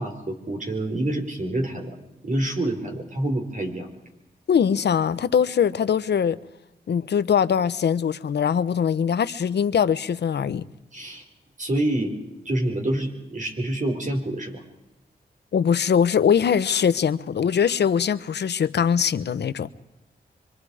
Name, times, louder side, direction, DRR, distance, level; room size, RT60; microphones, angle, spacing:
voice 1, 0.0-2.0 2.2-3.9 10.9-11.2 11.6-12.1 12.4-14.6, right 1 dB, 50° right, 4.8 m, -27 dB
voice 2, 4.5-6.4 6.9-10.6 15.5-19.7, left 7 dB, 85° left, 0.8 m, -22 dB
25.0 x 25.0 x 4.9 m
wide cardioid pair, 80°, 17 cm